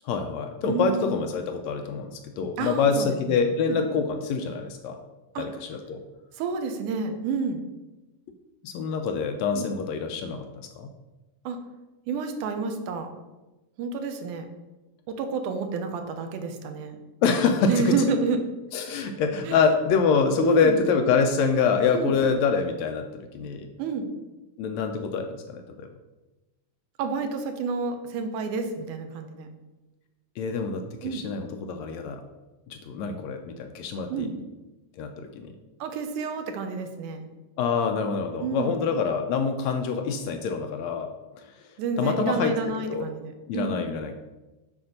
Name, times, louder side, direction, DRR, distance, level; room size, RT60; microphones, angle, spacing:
voice 1, 0.0-5.0 5.4-6.0 8.6-10.9 17.2-18.0 18.7-23.7 24.6-25.9 30.4-32.2 32.7-34.3 35.0-35.6 37.6-41.1 41.5-41.6 42.0-42.5 42.9-43.1 43.5-44.2, left 5 dB, 75° left, 5 dB, 1.7 m, -26 dB
voice 2, 0.7-1.2 2.6-3.8 5.4-5.5 6.3-7.6 9.5-9.7 11.5-11.6 12.1-13.1 13.8-14.5 15.1-17.0 17.7-18.4 19.4-19.6 20.4-20.8 21.9-22.1 23.8-24.1 27.0-29.5 31.0-31.2 34.1-34.4 35.8-37.2 38.4-38.8 41.8-43.8, right 5 dB, 85° right, 7 dB, 2.4 m, -29 dB
8.6 x 4.2 x 6.4 m, 1.1 s
omnidirectional pair, 3.5 m